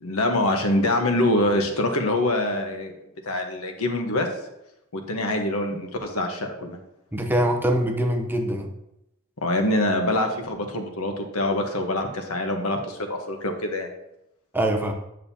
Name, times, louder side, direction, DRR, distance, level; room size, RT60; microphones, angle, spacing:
voice 1, 0.0-2.9 3.3-4.3 4.9-6.8 9.4-13.0 13.3-13.9, left 1 dB, 75° left, 4 dB, 1.1 m, -24 dB
voice 2, 7.1-8.7 14.5-14.9, right 1 dB, 10° right, 3 dB, 0.7 m, -23 dB
9.1 x 6.5 x 2.8 m, 0.84 s
head